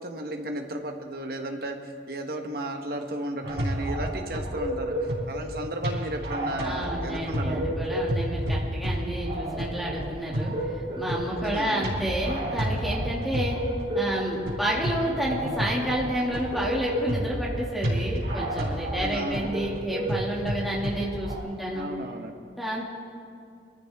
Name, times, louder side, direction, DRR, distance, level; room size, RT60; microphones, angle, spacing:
voice 1, 0.0-7.8 11.4-12.0 18.9-19.5 21.7-22.4, right 1 dB, 55° right, 4 dB, 1.3 m, -34 dB
sound 1, 3.4-21.4, equal, 75° right, 3.9 m, -30 dB
voice 2, 6.6-10.7 11.0-13.6 13.9-21.9 22.6-22.8, right 1 dB, ahead, -5 dB, 2.3 m, -30 dB
24.5 x 14.0 x 3.6 m, 2.3 s
head